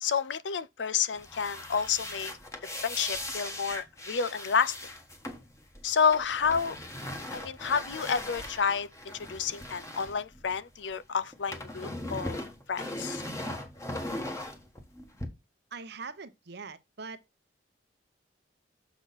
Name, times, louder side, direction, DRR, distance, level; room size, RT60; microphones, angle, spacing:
voice 1, 0.0-2.4 2.8-4.9 5.8-6.8 7.3-8.9 9.1-12.4 12.7-13.2, left 6 dB, 75° left, 0.5 m, -30 dB
sound 1, 1.1-10.9 11.2-15.3, left 1 dB, 15° left, 1.3 m, -39 dB
voice 2, 15.7-17.2, right 4 dB, 65° right, 0.9 m, -42 dB
6.9 x 6.1 x 4.1 m
head